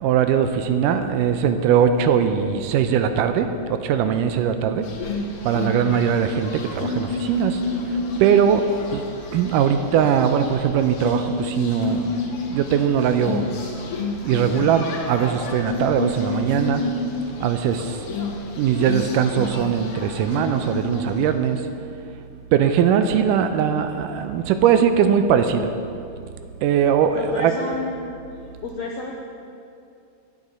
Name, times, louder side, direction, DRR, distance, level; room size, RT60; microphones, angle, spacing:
voice 1, 0.0-4.9 5.4-7.6 8.2-8.6 8.9-9.0 9.3-12.1 12.5-13.5 14.2-16.8 17.4-18.0 18.6-21.6 22.5-25.7 26.6-27.5, right 8 dB, 80° right, 8 dB, 2.1 m, -20 dB
sound 1, 4.8-21.5, left 3 dB, 60° left, 1.5 m, -30 dB
voice 2, 27.1-28.1 28.6-29.1, left 3 dB, 80° left, -1 dB, 1.5 m, -30 dB
16.0 x 9.2 x 4.2 m, 2.6 s
omnidirectional pair, 4.0 m